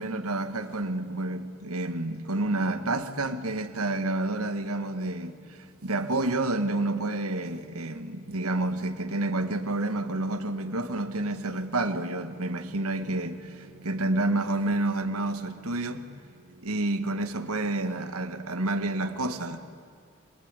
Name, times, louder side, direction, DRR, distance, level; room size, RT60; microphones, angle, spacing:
voice 1, 0.0-19.6, right 2 dB, 90° right, 1.6 m, -29 dB
26.0 x 22.0 x 9.8 m
head